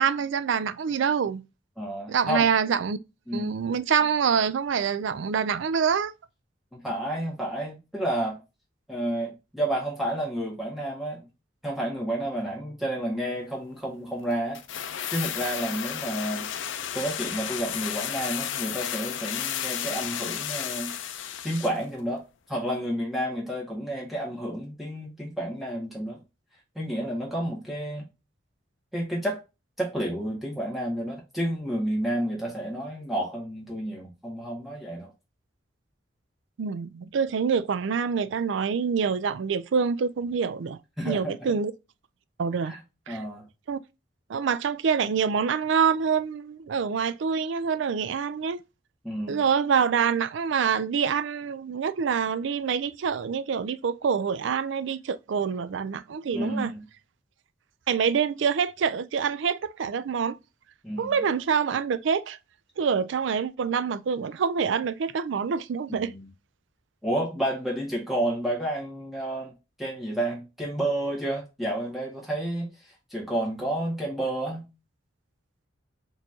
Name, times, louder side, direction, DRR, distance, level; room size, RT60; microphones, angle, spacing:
voice 1, 0.0-1.4 2.1-3.0 3.3-6.1 36.6-40.8 41.0-41.7 42.4-42.7 43.1-43.2 43.7-43.8 44.3-48.6 49.3-56.7 57.9-60.4 61.0-62.4 62.8-66.1, right 6 dB, 70° right, 0.4 m, -26 dB
voice 2, 1.8-2.5 3.3-3.5 6.7-8.4 8.9-11.3 11.6-14.6 15.1-16.5 16.9-20.9 21.4-26.2 26.7-28.1 28.9-29.4 29.8-35.1 41.0-41.4 42.6-42.8 43.1-43.5 49.0-49.4 56.3-56.8 60.8-61.2 65.9-66.3 67.0-69.5 69.8-72.7 73.1-74.6, right 1 dB, ahead, 1.6 m, -30 dB
sound 1, 14.5-21.8 22.1-22.2, left 9 dB, 75° left, 0.5 m, -33 dB
4.3 x 3.1 x 2.7 m
head